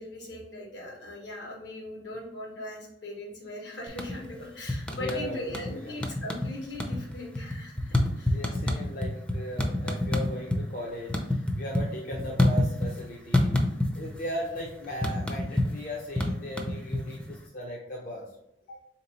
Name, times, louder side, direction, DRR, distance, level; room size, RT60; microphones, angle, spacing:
voice 1, 0.0-8.4 18.7-18.8, left 1 dB, 75° left, -2 dB, 1.4 m, -39 dB
sound 1, 3.9-4.4 4.7-5.7 6.0-6.5 6.7-10.6 10.9-13.0 13.3-14.2 14.4-17.3, left 1 dB, 5° left, 0.5 m, -27 dB
voice 2, 4.9-5.9 8.2-13.6 13.9-18.3, equal, 50° left, -3 dB, 0.7 m, -37 dB
3.7 x 2.9 x 4.0 m, 0.82 s
head